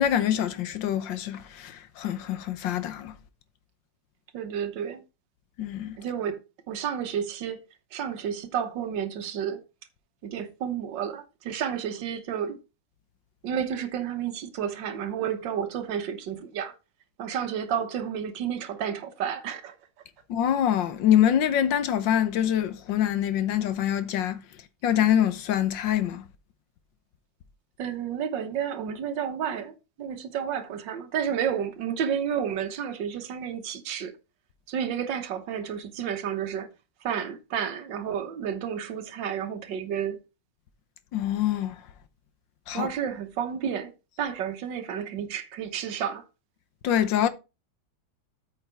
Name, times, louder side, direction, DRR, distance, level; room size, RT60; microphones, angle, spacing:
voice 1, 0.0-3.1 5.6-6.0 20.3-24.4 24.8-26.2 41.1-41.8 42.7-42.9 46.8-47.3, left 10 dB, 85° left, 1.6 m, -25 dB
voice 2, 4.3-5.0 6.0-6.4 6.7-7.6 7.9-9.6 10.2-12.6 13.4-16.7 17.2-19.7 27.8-34.1 34.7-36.7 37.0-40.2 42.7-43.9 44.2-46.2, right 8 dB, 80° right, 1.7 m, -31 dB
8.5 x 5.6 x 4.5 m
omnidirectional pair, 1.9 m